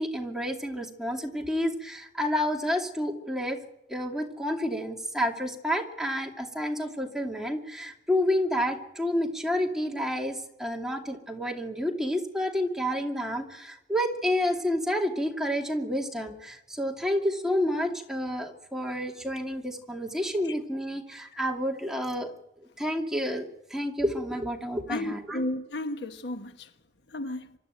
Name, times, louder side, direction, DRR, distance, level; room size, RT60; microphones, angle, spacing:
voice 1, 0.0-3.6 3.9-22.3 22.8-25.4, equal, 5° right, 2.6 m, -29 dB
voice 2, 24.9-26.6 27.1-27.5, left 1 dB, 80° left, 1.3 m, -33 dB
25.0 x 13.0 x 9.1 m
head